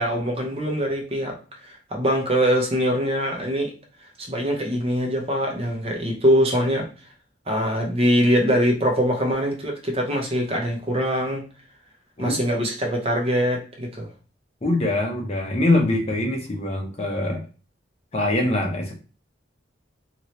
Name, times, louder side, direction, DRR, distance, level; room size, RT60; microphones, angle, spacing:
voice 1, 0.0-3.7 4.2-6.9 7.5-11.4 12.2-14.1, equal, 30° right, 1 dB, 0.6 m, -23 dB
voice 2, 14.6-17.4 18.1-18.9, left 1 dB, 35° left, 1 dB, 0.7 m, -23 dB
2.9 x 2.7 x 3.0 m, 0.36 s
head